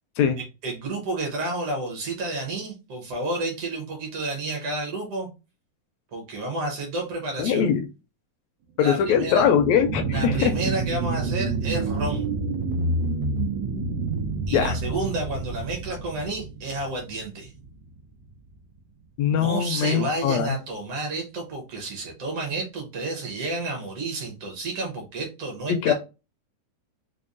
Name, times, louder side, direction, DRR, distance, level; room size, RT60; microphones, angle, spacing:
voice 1, 0.6-5.3 6.1-7.7 8.8-9.4 10.1-12.3 14.5-17.5 19.3-25.9, right 2 dB, 65° right, 1 dB, 1.6 m, -30 dB
voice 2, 7.4-7.8 8.8-10.5 14.5-14.8 19.2-20.6 25.8-25.9, left 8 dB, 80° left, 7 dB, 1.6 m, -21 dB
sound 1, 8.8-17.9 18.3-18.4, right 3 dB, 85° right, 2.1 m, -28 dB
5.2 x 2.2 x 2.4 m, 0.29 s
omnidirectional pair, 3.4 m